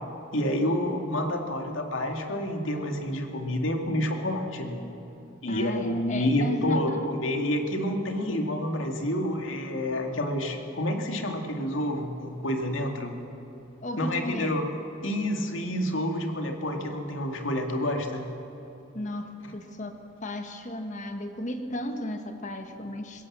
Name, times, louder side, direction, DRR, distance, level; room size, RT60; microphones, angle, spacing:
voice 1, 0.3-4.8 5.4-13.2 14.0-14.7 15.0-18.3 19.4-19.5, left 1 dB, 80° left, 4 dB, 2.4 m, -28 dB
voice 2, 5.5-7.1 13.8-14.6 18.9-23.3, left 1 dB, 40° left, 6 dB, 1.4 m, -34 dB
21.0 x 17.0 x 7.5 m, 2.9 s
head